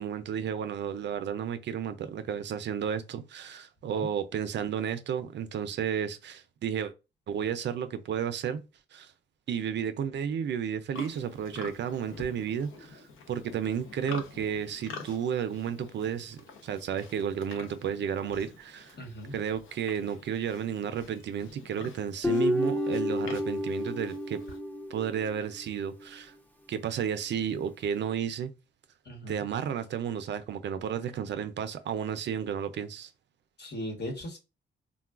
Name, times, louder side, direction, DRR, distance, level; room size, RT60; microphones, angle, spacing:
voice 1, 0.0-6.9 7.3-8.6 8.9-9.1 9.5-19.0 19.3-24.4 24.9-26.3 26.7-28.5 29.3-33.1, right 8 dB, 60° right, 0.4 m, -32 dB
Livestock farm animals working animals, 10.9-24.6, left 4 dB, 80° left, 0.7 m, -47 dB
voice 2, 19.0-19.3 29.1-29.4 33.6-34.4, equal, 55° left, 1.1 m, -38 dB
Guitar, 22.2-25.5, left 1 dB, 10° left, 0.5 m, -30 dB
3.6 x 2.2 x 2.3 m
cardioid pair, 85°, 20 cm